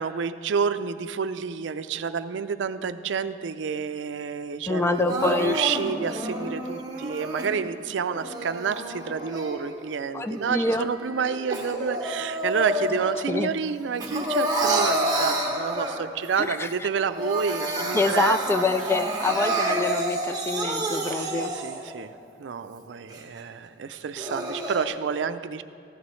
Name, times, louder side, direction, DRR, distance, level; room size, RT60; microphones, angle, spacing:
voice 1, 0.0-18.4 21.1-22.1 22.4-25.6, right 6 dB, 80° right, 12 dB, 0.4 m, -29 dB
voice 2, 4.7-5.6 10.1-10.9 13.3-13.5 16.4-16.7 17.7-21.5, left 3 dB, 15° left, 10 dB, 0.3 m, -26 dB
Crying sobbing, 5.1-7.5 8.1-9.9 10.4-13.3 13.6-16.3 16.7-16.8 17.1-21.9 22.4-22.5 23.1-23.2 23.9-24.8, right 1 dB, 20° right, 1.4 m, -29 dB
14.5 x 11.0 x 3.1 m, 2.6 s
head